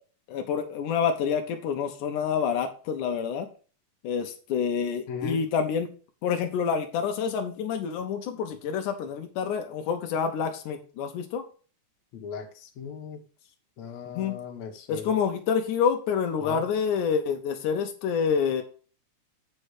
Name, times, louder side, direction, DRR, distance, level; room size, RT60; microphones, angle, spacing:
voice 1, 0.3-3.5 4.0-5.9 6.2-11.4 14.1-14.3 14.9-18.6, left 7 dB, 85° left, 5 dB, 2.4 m, -27 dB
voice 2, 5.1-5.5 12.1-13.2 13.8-15.2 16.4-16.6, left 6 dB, 70° left, 2 dB, 2.4 m, -37 dB
7.8 x 5.4 x 4.8 m, 0.39 s
omnidirectional pair, 3.5 m